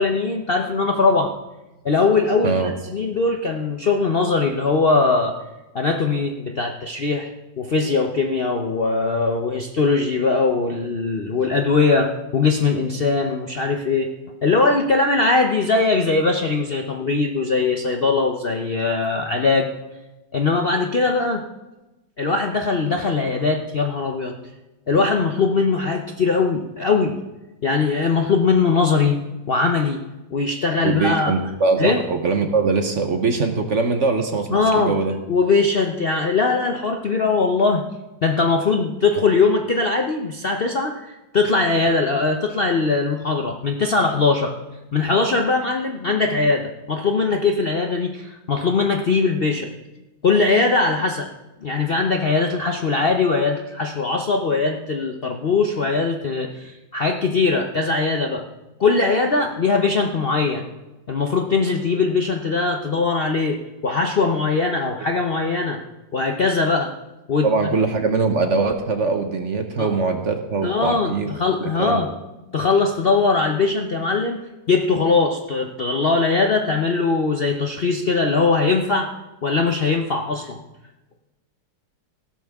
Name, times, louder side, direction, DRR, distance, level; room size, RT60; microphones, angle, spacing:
voice 1, 0.0-1.3 1.8-5.3 5.7-7.3 7.6-14.1 14.4-19.7 20.3-21.4 22.2-24.3 24.9-27.2 27.6-29.2 29.5-30.0 30.3-31.3 31.8-32.0 34.5-35.0 35.3-37.8 38.2-44.5 44.9-49.7 50.2-51.3 51.6-58.5 58.8-60.6 61.1-63.6 63.8-65.8 66.1-66.9 67.3-67.5 69.8-69.9 70.6-72.1 72.5-74.4 74.7-79.1 79.4-80.6, left 4 dB, 50° left, 3 dB, 0.7 m, -20 dB
voice 2, 30.8-35.1 59.0-59.1 67.4-71.3 71.6-72.1, right 4 dB, 50° right, 6 dB, 1.1 m, -22 dB
16.0 x 12.5 x 3.6 m, 1.0 s
omnidirectional pair, 1.9 m